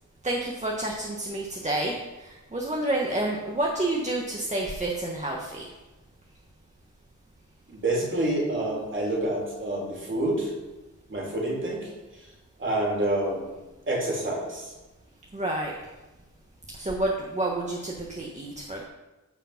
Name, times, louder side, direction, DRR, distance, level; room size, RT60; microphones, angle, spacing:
voice 1, 0.2-5.7 15.3-15.7 16.7-18.9, right 1 dB, 25° right, -2 dB, 1.3 m, -29 dB
voice 2, 7.7-10.5 11.1-11.9 12.6-13.6 13.9-14.7, right 1 dB, 40° right, -2 dB, 3.3 m, -28 dB
14.0 x 5.2 x 5.8 m, 1.1 s
wide cardioid pair, 140°, 30 cm